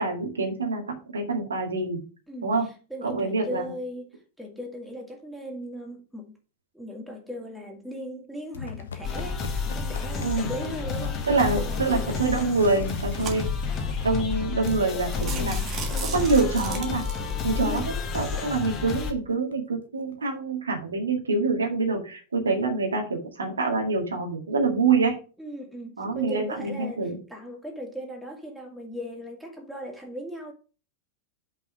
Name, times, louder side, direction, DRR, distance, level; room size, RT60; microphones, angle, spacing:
voice 1, 0.0-2.0 2.4-2.7 3.0-3.7 10.2-10.5 11.3-13.5 14.0-15.6 16.1-17.0 17.4-25.2 26.0-27.2, right 3 dB, 75° right, 2.0 m, -26 dB
voice 2, 2.3-4.1 4.4-6.3 6.7-11.3 11.6-12.2 15.2-15.7 17.5-17.9 25.4-30.5, equal, ahead, 2.4 m, -38 dB
sound 1, 8.5-14.8 15.1-15.3 15.7-16.0 16.4-16.5 16.7-16.8 17.3-17.6 17.9-18.0 18.3-18.4 18.7-19.5 20.1-20.2, left 6 dB, 65° left, 1.1 m, -39 dB
sound 2, 9.0-19.1, left 5 dB, 30° left, 1.8 m, -30 dB
sound 3, 11.9-12.2 12.8-13.8 14.3-14.4 14.7-14.8 15.1-17.3, right 6 dB, 30° right, 2.2 m, -37 dB
5.7 x 5.4 x 6.4 m
figure-of-eight pair, 90°, 0 cm